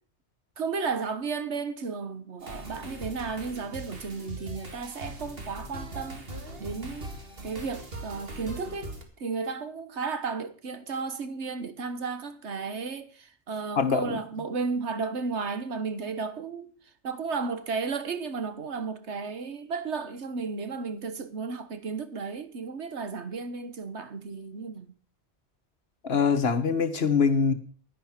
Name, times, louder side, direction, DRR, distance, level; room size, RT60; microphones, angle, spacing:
voice 1, 0.6-6.3 6.6-7.1 7.4-8.9 9.2-16.7 17.0-24.9, right 4 dB, 85° right, 1.6 m, -33 dB
sound 1, 2.4-9.0, right 1 dB, 60° right, 2.4 m, -40 dB
voice 2, 13.8-14.2 26.0-27.5, left 5 dB, 65° left, 1.5 m, -23 dB
11.0 x 11.0 x 6.0 m
omnidirectional pair, 1.1 m